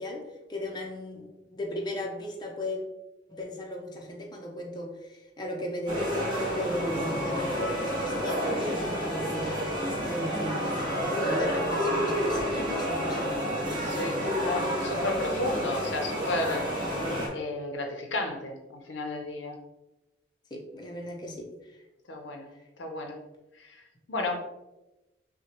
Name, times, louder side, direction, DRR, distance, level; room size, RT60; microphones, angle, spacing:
voice 1, 0.0-2.8 3.3-14.3 20.5-21.8, left 1 dB, 25° left, 0 dB, 0.6 m, -37 dB
sound 1, 5.9-17.3, equal, 25° right, 1.2 m, -29 dB
voice 2, 13.8-16.7 17.3-19.6 22.1-22.5 22.8-23.2 23.6-24.4, left 2 dB, 85° left, 3 dB, 0.7 m, -33 dB
5.9 x 2.2 x 2.9 m, 0.98 s
head